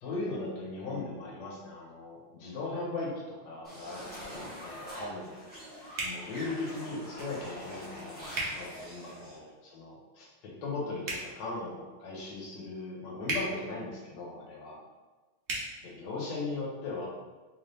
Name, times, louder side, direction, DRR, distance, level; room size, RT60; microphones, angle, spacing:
voice 1, 0.0-5.3 6.0-14.8 15.8-17.1, left 3 dB, 60° left, -5 dB, 1.5 m, -38 dB
sound 1, 3.6-9.4, equal, 5° left, 0.8 m, -44 dB
sound 2, 5.9-6.2 8.3-8.5 11.0-11.2 13.2-13.4 15.4-15.6, right 2 dB, 70° right, 0.6 m, -32 dB
4.1 x 2.3 x 3.3 m, 1.2 s
omnidirectional pair, 2.3 m